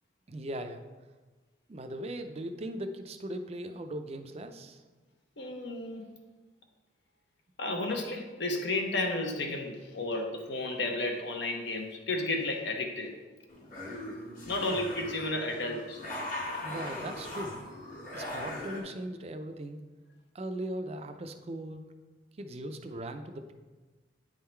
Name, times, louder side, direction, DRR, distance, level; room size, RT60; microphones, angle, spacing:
voice 1, 0.3-0.8 1.7-4.8 14.7-14.9 16.6-17.6 18.1-19.8 20.3-21.8 22.4-23.5, right 1 dB, 35° right, 8 dB, 0.4 m, -39 dB
voice 2, 5.4-6.1 7.6-13.1 14.5-16.0, left 2 dB, 70° left, 3 dB, 0.9 m, -32 dB
sound 1, 13.5-18.8, left 1 dB, 45° left, 1.5 m, -39 dB
9.1 x 3.7 x 4.4 m, 1.3 s
head